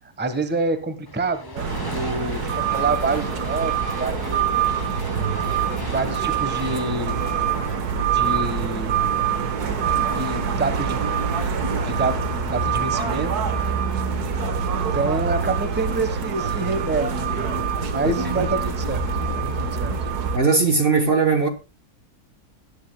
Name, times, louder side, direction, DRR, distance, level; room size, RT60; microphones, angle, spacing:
voice 1, 0.2-5.0 5.8-7.2 8.0-9.1 10.1-11.2 11.8-13.3 14.9-17.6 17.9-19.0 19.4-19.5 19.8-19.9, right 3 dB, 10° right, 1.1 m, -27 dB
sound 1, 1.1-8.5, left 3 dB, 30° left, 0.4 m, -39 dB
sound 2, 1.6-20.4, right 6 dB, 85° right, 1.8 m, -25 dB
voice 2, 20.3-21.5, right 4 dB, 40° right, 1.3 m, -19 dB
19.5 x 10.0 x 2.2 m
omnidirectional pair, 1.6 m